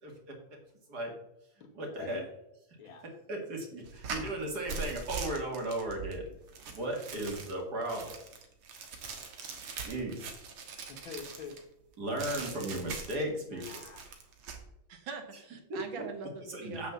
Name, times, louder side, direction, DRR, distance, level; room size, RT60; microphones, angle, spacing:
voice 1, 0.0-0.6 0.9-1.1 1.7-2.2 3.3-6.2 6.7-8.2 9.8-10.3 12.0-13.7 15.7-15.8 16.5-16.9, right 1 dB, 50° right, 1 dB, 2.7 m, -36 dB
voice 2, 1.6-2.2 2.8-3.1 10.2-10.3 10.9-11.6 13.3-14.1, left 6 dB, 70° left, 6 dB, 2.1 m, -47 dB
sound 1, 3.8-11.6 12.2-13.3 13.6-14.6, right 5 dB, 90° right, 2.3 m, -42 dB
voice 3, 14.9-16.9, right 4 dB, 70° right, 6 dB, 2.0 m, -42 dB
7.8 x 6.4 x 7.0 m, 0.83 s
omnidirectional pair, 2.3 m